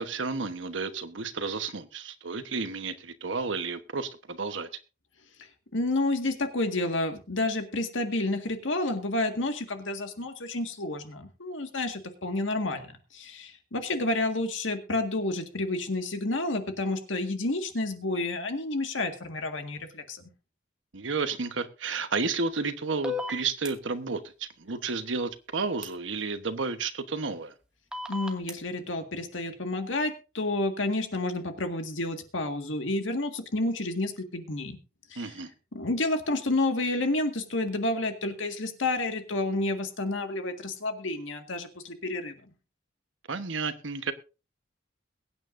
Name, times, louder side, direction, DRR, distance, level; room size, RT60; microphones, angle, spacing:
voice 1, 0.0-4.7 20.9-27.5 35.2-35.5 43.3-44.1, right 4 dB, 80° right, 1.1 m, -32 dB
voice 2, 5.7-20.2 28.1-34.8 35.1-35.3 35.7-42.4, left 2 dB, 85° left, 1.8 m, -30 dB
sound 1, 23.0-23.7 25.8-25.9 27.9-28.5, left 2 dB, 5° right, 1.2 m, -33 dB
22.0 x 9.1 x 2.6 m
head